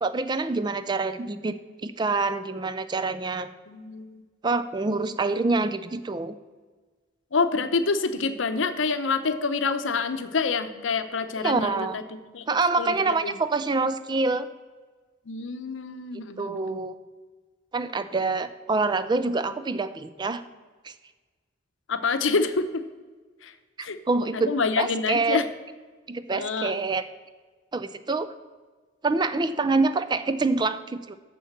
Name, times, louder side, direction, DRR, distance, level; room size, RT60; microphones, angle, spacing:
voice 1, 0.0-3.5 4.4-6.4 11.4-12.0 12.5-14.5 16.4-17.0 17.7-20.4 20.8-20.9 24.1-25.4 26.1-27.0 27.7-28.3 29.0-31.2, right 3 dB, 25° right, 12 dB, 0.4 m, -26 dB
voice 2, 3.7-4.2 7.3-12.0 12.3-12.5 12.8-12.9 13.2-13.4 15.3-16.8 21.9-22.8 23.4-23.5 23.8-24.0 24.3-25.5 26.3-26.8, left 4 dB, 85° left, 10 dB, 0.7 m, -27 dB
7.3 x 7.0 x 7.2 m, 1.4 s
head